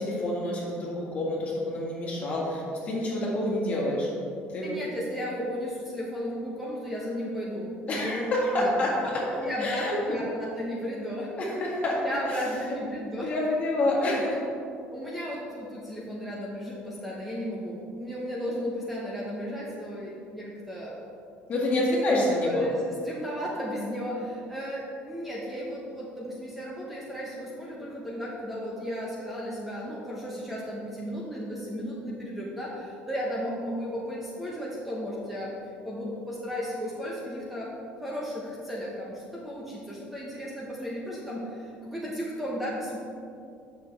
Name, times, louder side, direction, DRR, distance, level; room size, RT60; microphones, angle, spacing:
voice 1, 0.0-4.1 4.5-4.8 7.9-9.2 9.6-10.0 11.4-11.9 12.3-12.4 13.2-14.3 21.5-22.6, left 1 dB, 35° left, -4 dB, 1.9 m, -27 dB
voice 2, 4.6-8.2 8.5-8.7 9.0-11.5 12.0-13.3 13.9-14.2 14.9-21.1 21.6-35.5 35.8-37.7 38.0-43.0, equal, 5° right, -5 dB, 1.0 m, -34 dB
9.0 x 6.4 x 3.3 m, 2.5 s
cardioid pair, 155°, 4 cm